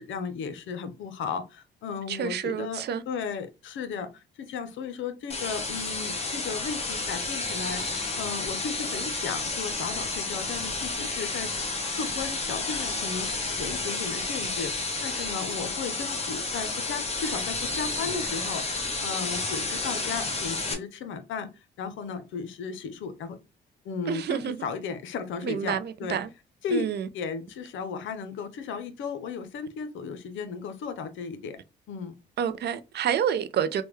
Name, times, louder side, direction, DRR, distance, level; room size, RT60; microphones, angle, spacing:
voice 1, 0.0-7.8 8.2-23.4 23.8-26.2 26.6-26.9 27.1-31.6 31.9-32.2, left 5 dB, 80° left, 0.7 m, -35 dB
voice 2, 2.1-3.0 24.1-24.6 25.4-26.3 26.7-27.1 32.4-33.8, right 8 dB, 55° right, 0.4 m, -28 dB
sound 1, 5.3-20.7, left 3 dB, 30° left, 0.9 m, -31 dB
3.4 x 2.2 x 3.1 m
cardioid pair, 90°, 20 cm